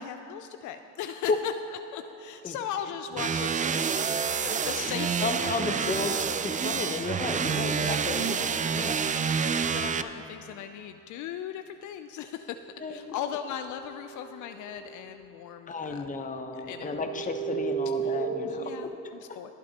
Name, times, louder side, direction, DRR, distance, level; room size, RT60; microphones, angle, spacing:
voice 1, 0.0-6.2 9.0-9.2 9.5-12.6 12.9-16.1 16.5-17.3 18.0-18.1 18.4-18.9 19.2-19.5, left 9 dB, 65° left, 8 dB, 0.5 m, -38 dB
sound 1, 2.5-4.0 11.8-15.4 15.6-18.9, right 7 dB, 80° right, 0.9 m, -38 dB
sound 2, 3.2-10.0, right 6 dB, 25° right, 0.4 m, -28 dB
voice 2, 5.2-9.0 12.8-13.1 15.7-18.6 19.0-19.1, left 3 dB, 25° left, 6 dB, 0.9 m, -33 dB
20.5 x 8.4 x 2.9 m, 2.9 s
supercardioid pair, 85°, 32 cm